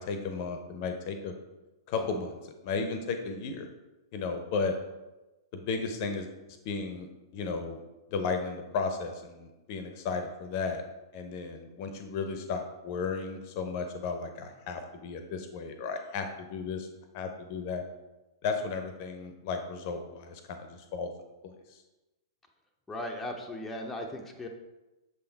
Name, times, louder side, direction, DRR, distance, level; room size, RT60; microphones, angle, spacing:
voice 1, 0.0-1.3 1.9-3.7 4.1-4.8 5.5-7.1 7.3-7.8 8.1-10.8 11.1-16.9 17.1-17.8 18.4-21.1 21.4-21.5, left 4 dB, 45° left, 6 dB, 0.7 m, -34 dB
voice 2, 22.9-24.5, left 1 dB, 10° left, 1 dB, 0.6 m, -37 dB
6.7 x 3.8 x 4.0 m, 1.1 s
figure-of-eight pair, 105°, 2 cm